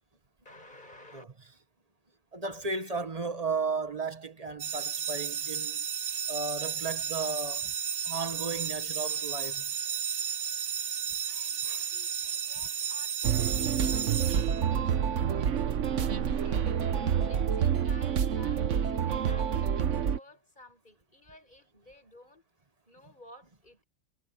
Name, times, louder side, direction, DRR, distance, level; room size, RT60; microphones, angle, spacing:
voice 1, 0.4-1.2 11.3-16.8 17.2-18.7 19.0-22.4 22.9-23.8, left 1 dB, 30° left, 8.3 m, -54 dB
voice 2, 2.3-5.8 6.3-7.7 8.0-9.7 11.6-11.9 15.1-15.2 16.1-16.4, right 4 dB, 25° right, 1.5 m, -35 dB
sound 1, 4.6-15.0, right 8 dB, 85° right, 1.6 m, -33 dB
sound 2, 13.2-20.2, right 8 dB, 60° right, 1.2 m, -28 dB
omnidirectional pair, 1.5 m